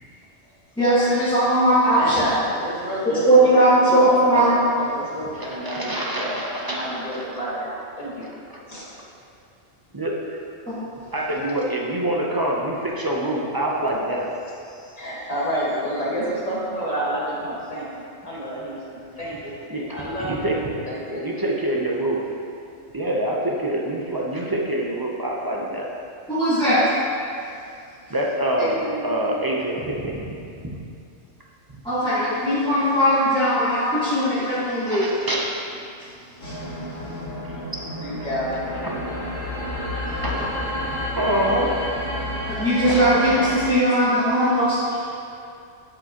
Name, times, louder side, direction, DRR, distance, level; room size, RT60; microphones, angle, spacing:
voice 1, 0.8-2.3 3.0-4.6 10.7-10.8 26.3-26.9 31.8-35.1 36.0-36.1 36.4-36.6 40.0-40.1 42.5-45.1, right 1 dB, 5° left, -13 dB, 1.4 m, -19 dB
voice 2, 1.9-3.7 4.3-8.2 8.7-8.9 15.0-17.8 18.2-19.5 19.9-20.6 20.9-21.2 28.6-29.6 38.0-39.2, right 1 dB, 30° left, -7 dB, 1.6 m, -29 dB
voice 3, 5.3-6.9 7.1-7.2 8.5-8.6 9.9-10.4 11.1-14.4 14.7-14.9 19.7-19.8 20.2-20.6 21.2-22.2 22.9-25.9 28.1-30.2 30.7-30.8 34.9-35.6 37.7-37.8 38.8-39.0 40.2-40.6 41.1-41.9 42.8-43.0, right 1 dB, 25° right, -2 dB, 0.5 m, -26 dB
sound 1, 36.4-43.7, left 1 dB, 85° left, 2.2 m, -30 dB
11.5 x 5.0 x 2.9 m, 2.5 s
omnidirectional pair, 1.4 m